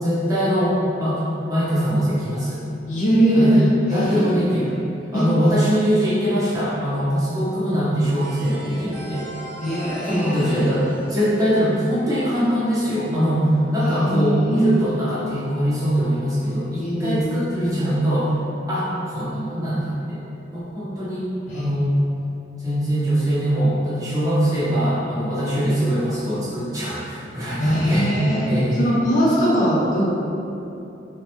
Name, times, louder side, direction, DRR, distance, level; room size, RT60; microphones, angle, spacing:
voice 1, 0.0-1.2 1.5-2.6 3.3-3.6 3.9-4.7 5.1-9.3 10.0-18.3 18.7-20.2 20.5-21.3 21.5-22.0 22.6-28.1 28.5-28.8, equal, 20° right, -10 dB, 0.7 m, -22 dB
voice 2, 2.9-3.5 4.0-4.3 5.1-5.3 9.6-10.6 13.8-14.7 16.8-17.3 21.5-21.7 27.6-28.5 28.8-30.2, right 1 dB, 40° left, -6 dB, 0.4 m, -21 dB
sound 1, 8.2-12.8, right 2 dB, 50° right, 0.7 m, -39 dB
3.4 x 2.1 x 2.9 m, 2.9 s
head